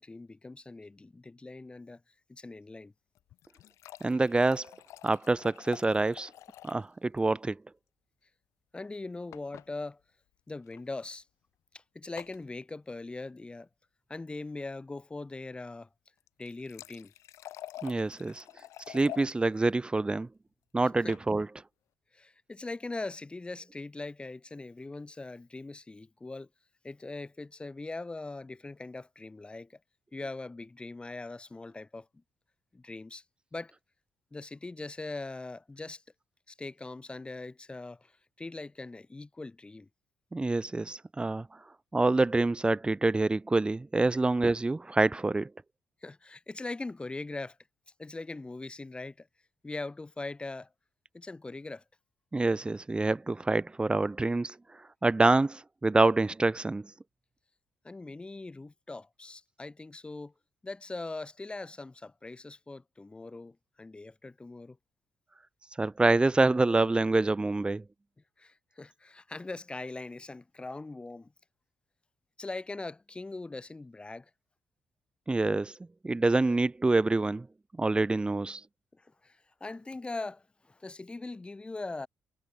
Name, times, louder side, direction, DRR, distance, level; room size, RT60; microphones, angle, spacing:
voice 1, 0.0-2.0 2.3-2.9 8.7-10.0 10.5-11.2 11.7-13.7 14.1-15.9 16.4-17.1 21.0-21.1 22.1-26.5 26.8-29.8 30.1-32.1 32.7-33.2 33.5-33.7 34.3-36.0 36.5-39.9 46.0-47.6 48.0-49.3 49.6-50.7 51.1-51.8 57.8-60.3 60.6-64.8 68.4-71.3 72.4-74.3 78.9-82.1, left 3 dB, 20° left, 6.2 m, -41 dB
sound 1, 3.1-6.9 7.2-7.3 7.5-7.6 9.3-9.7 10.6-10.8 12.2-12.4 16.2-19.3 20.8-21.3, left 14 dB, 90° left, 6.7 m, -47 dB
voice 2, 4.0-4.7 5.0-6.3 6.6-7.6 17.8-18.4 18.9-20.3 20.7-21.5 40.3-41.5 41.9-45.5 52.3-56.8 65.8-67.8 75.3-75.7 76.0-77.5 77.8-78.6, right 2 dB, 20° right, 3.0 m, -26 dB
cardioid pair, 90°, 5 cm